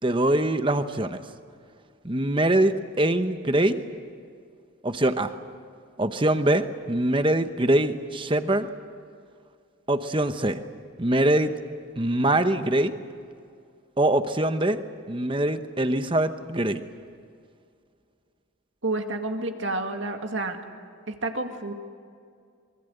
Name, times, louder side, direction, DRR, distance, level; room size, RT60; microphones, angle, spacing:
voice 1, 0.0-1.2 2.0-3.8 4.8-5.3 6.0-8.7 9.9-10.6 11.0-11.5 12.0-13.0 14.0-14.8 15.1-16.8, right 1 dB, 25° right, 9 dB, 1.0 m, -23 dB
voice 2, 18.8-20.6 21.1-21.7, right 2 dB, 65° right, 5 dB, 2.2 m, -29 dB
26.0 x 22.5 x 8.1 m, 2.3 s
head